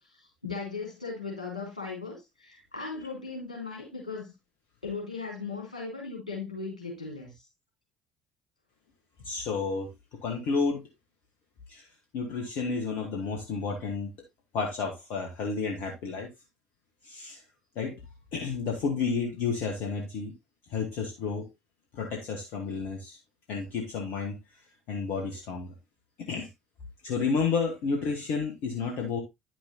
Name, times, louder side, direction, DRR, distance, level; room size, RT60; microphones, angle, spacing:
voice 1, 0.0-4.3 4.8-7.4, left 4 dB, 85° left, 3.5 m, -38 dB
voice 2, 9.2-9.9 10.2-10.8 11.7-11.8 12.1-14.1 14.5-16.3 17.0-17.4 17.7-17.9 18.3-20.3 20.7-21.4 21.9-23.2 23.5-24.3 24.9-25.7 26.3-26.5 27.0-29.2, left 5 dB, 60° left, 1.4 m, -31 dB
9.9 x 6.1 x 2.8 m
figure-of-eight pair, 55°, 4 cm